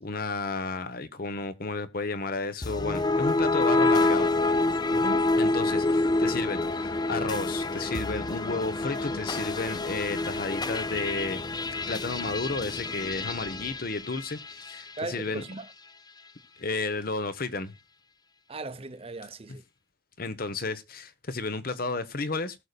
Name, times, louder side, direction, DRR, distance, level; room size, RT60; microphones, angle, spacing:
voice 1, 0.0-4.3 5.4-11.4 11.9-15.4 16.6-17.7 19.5-19.6 20.2-22.6, left 3 dB, 55° left, 1.1 m, -32 dB
sound 1, 2.6-14.9, left 2 dB, 25° left, 0.5 m, -27 dB
voice 2, 4.9-5.3 15.0-15.7 18.5-19.6, right 2 dB, 30° right, 0.8 m, -37 dB
19.0 x 6.8 x 2.3 m
head